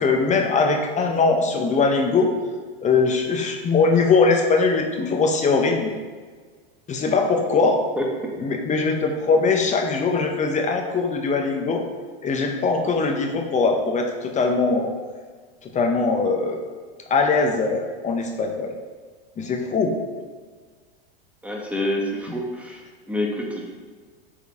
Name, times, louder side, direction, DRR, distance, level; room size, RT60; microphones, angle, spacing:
voice 1, 0.0-2.3 2.8-5.9 6.9-7.8 8.4-11.8 12.2-14.9 15.7-16.6 17.1-18.7 19.4-19.9, left 4 dB, 25° left, 3 dB, 0.8 m, -21 dB
voice 2, 21.4-22.8 23.1-23.6, left 1 dB, 5° right, -1 dB, 1.4 m, -27 dB
8.1 x 4.6 x 3.6 m, 1.5 s
hypercardioid pair, 115°, 30 cm